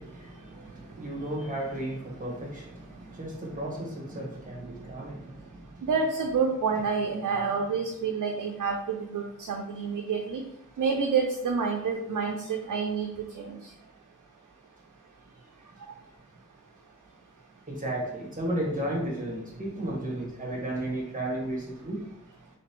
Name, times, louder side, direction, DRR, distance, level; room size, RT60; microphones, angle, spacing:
voice 1, 0.0-5.8 17.7-22.0, right 1 dB, 25° right, -3 dB, 1.3 m, -34 dB
voice 2, 5.8-10.4 10.8-13.1 13.4-13.6, right 5 dB, 75° right, 2 dB, 0.5 m, -28 dB
3.2 x 3.0 x 3.0 m, 0.76 s
wide cardioid pair, 60°, 31 cm